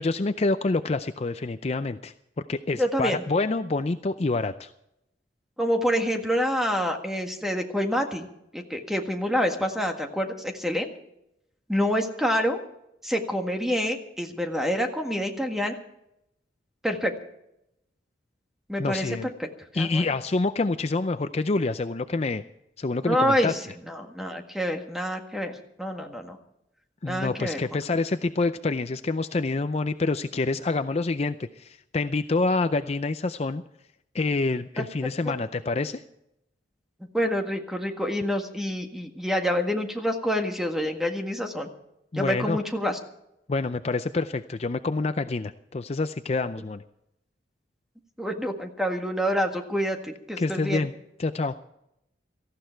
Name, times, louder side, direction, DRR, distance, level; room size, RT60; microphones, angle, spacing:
voice 1, 0.0-2.1 2.5-4.7 18.8-19.3 19.7-22.4 22.8-23.5 27.0-33.6 34.1-36.0 42.1-42.6 43.5-46.8 50.4-50.9 51.2-51.6, left 3 dB, 35° left, 11 dB, 0.5 m, -27 dB
voice 2, 2.8-3.2 5.6-8.3 8.5-10.9 11.7-12.6 13.0-15.8 16.8-17.1 18.7-19.5 19.7-20.1 23.0-26.4 27.0-27.6 34.8-34.9 37.1-41.7 42.1-43.0 48.2-50.9, equal, ahead, 4 dB, 1.7 m, -27 dB
18.0 x 14.5 x 4.5 m, 0.81 s
head